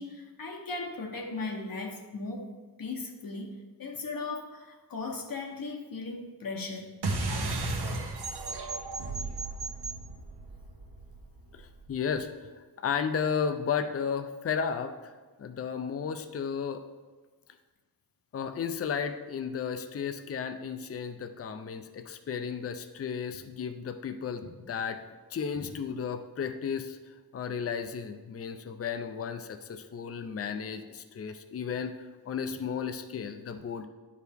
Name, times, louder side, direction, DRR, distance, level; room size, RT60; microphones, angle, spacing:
voice 1, 0.0-2.5 2.8-7.0 25.5-25.7, left 3 dB, 60° left, 2 dB, 0.9 m, -37 dB
sound 1, 7.0-11.9, right 2 dB, 80° right, 1.0 m, -34 dB
voice 2, 11.5-12.5 12.8-15.1 15.4-16.8 18.3-25.0 25.3-27.0 27.3-31.9 32.3-33.9, left 6 dB, 40° left, 7 dB, 0.5 m, -34 dB
10.0 x 4.7 x 3.5 m, 1.3 s
wide cardioid pair, 110°, 39 cm